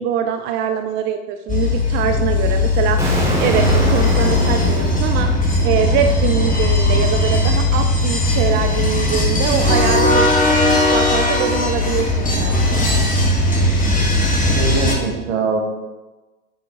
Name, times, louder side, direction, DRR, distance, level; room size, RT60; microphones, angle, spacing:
voice 1, 0.0-12.8, right 8 dB, 25° right, 6 dB, 0.4 m, -23 dB
sound 1, 1.5-14.9, left 2 dB, 20° left, 1.5 m, -17 dB
Explosion, 3.0-5.9, right 1 dB, 5° right, 2.1 m, -24 dB
voice 2, 14.4-15.6, right 4 dB, 60° right, 0 dB, 2.1 m, -22 dB
8.6 x 4.3 x 4.1 m, 1.1 s
hypercardioid pair, 100°, 41 cm